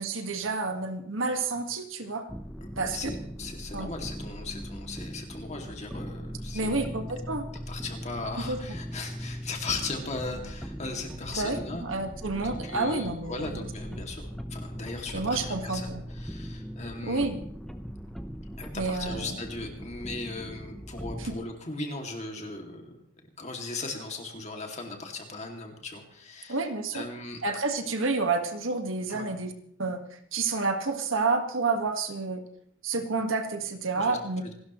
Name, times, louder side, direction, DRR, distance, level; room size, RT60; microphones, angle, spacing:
voice 1, 0.0-2.2 2.8-3.0 3.7-3.9 6.5-7.5 8.4-8.6 11.4-14.2 15.1-16.0 17.1-17.4 18.7-19.3 21.3-21.4 26.5-27.1 27.4-29.5 29.8-30.0 30.3-32.4 32.8-34.4, right 3 dB, 70° right, 6 dB, 1.7 m, -29 dB
sound 1, 2.3-21.4, equal, ahead, 0.8 m, -39 dB
voice 2, 2.6-6.9 7.7-11.8 12.3-17.2 18.6-23.0 23.4-26.6 26.9-27.4 29.1-29.3 34.0-34.5, left 3 dB, 35° left, 3 dB, 2.4 m, -38 dB
27.5 x 13.0 x 3.1 m, 0.67 s
head